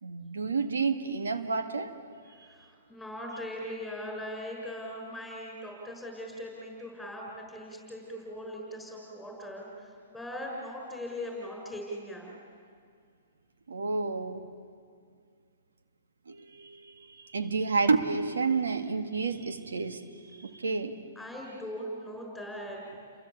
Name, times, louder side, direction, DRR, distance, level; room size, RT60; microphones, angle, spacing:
voice 1, 0.0-1.9 2.3-2.5 13.7-14.5 16.3-21.0, right 4 dB, 90° right, 8 dB, 2.0 m, -30 dB
voice 2, 2.5-12.3 21.1-22.8, equal, ahead, 0 dB, 6.6 m, -40 dB
29.5 x 23.0 x 8.5 m, 2.2 s
hypercardioid pair, 135°, 0 cm